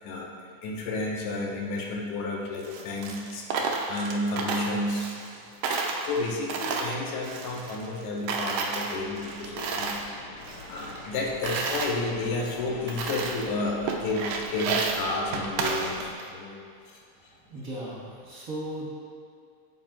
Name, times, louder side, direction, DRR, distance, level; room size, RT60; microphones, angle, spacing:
voice 1, 0.0-5.1 5.8-10.0 10.7-16.6 16.9-17.0, left 2 dB, 85° left, -1 dB, 2.3 m, -31 dB
Coin (dropping), 2.6-5.4 5.6-8.0 8.3-10.1 10.4-11.9 12.5-12.6 12.9-13.5 13.9-16.3, right 4 dB, 75° right, 1.7 m, -32 dB
sound 1, 8.9-16.1, left 3 dB, 65° left, 1.7 m, -45 dB
voice 2, 17.5-18.9, right 1 dB, 55° right, -7 dB, 0.9 m, -36 dB
8.7 x 8.0 x 2.4 m, 2.3 s
omnidirectional pair, 3.4 m